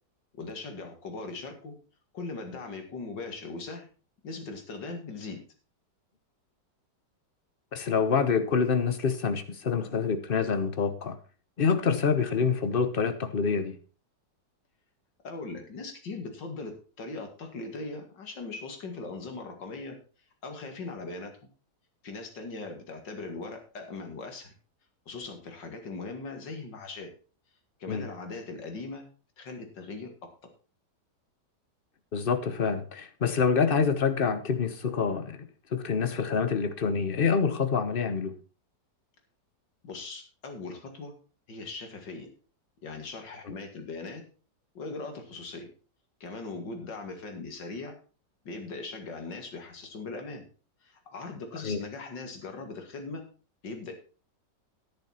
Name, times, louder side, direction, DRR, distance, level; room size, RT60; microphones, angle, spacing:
voice 1, 0.3-1.7 2.1-3.9 4.2-5.4 15.2-16.7 17.0-20.0 20.4-21.3 22.0-24.5 25.1-27.1 27.8-29.1 29.4-30.1 39.8-41.1 41.5-42.3 42.8-44.2 44.7-45.7 46.2-48.0 48.4-50.4 50.8-53.2 53.6-53.9, left 3 dB, 90° left, 2.8 m, -39 dB
voice 2, 7.7-11.2 11.6-13.8 27.9-28.1 32.1-38.3 43.4-43.5 51.6-51.8, left 5 dB, 40° left, 1.0 m, -26 dB
10.5 x 10.0 x 4.3 m
omnidirectional pair, 1.9 m